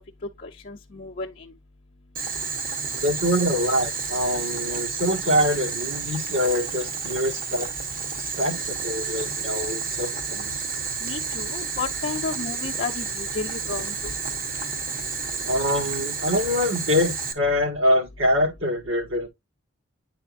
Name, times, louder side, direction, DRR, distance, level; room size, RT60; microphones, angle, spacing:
voice 1, 0.4-1.5 11.0-14.1, left 4 dB, 40° left, 0.6 m, -32 dB
Boiling, 2.2-17.3, right 5 dB, 40° right, 1.0 m, -30 dB
voice 2, 3.0-7.7 8.2-10.6 15.4-19.3, left 1 dB, 70° right, 1.8 m, -24 dB
9.4 x 4.1 x 2.5 m
head